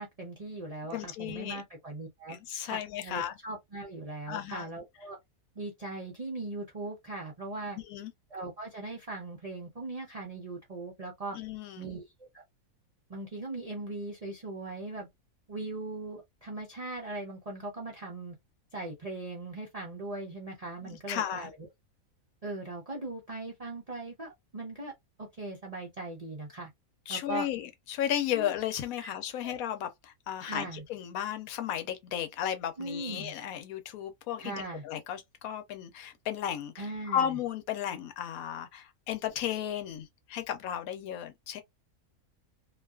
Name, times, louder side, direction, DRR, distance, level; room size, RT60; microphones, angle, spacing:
voice 1, 0.0-2.4 2.6-5.2 5.6-7.8 8.3-11.4 11.8-12.4 13.1-15.1 15.5-18.4 18.7-21.7 22.4-24.9 25.2-26.7 27.1-27.5 28.3-28.5 29.0-29.1 29.4-29.5 30.4-30.8 32.8-33.3 34.4-34.8 36.8-37.4, right 2 dB, 55° right, 0.4 m, -39 dB
voice 2, 0.9-1.6 2.3-3.3 4.3-4.7 7.8-8.1 11.3-11.9 20.8-21.5 27.1-34.5 34.8-41.6, left 10 dB, 80° left, 1.0 m, -34 dB
2.5 x 2.3 x 2.3 m
omnidirectional pair, 1.5 m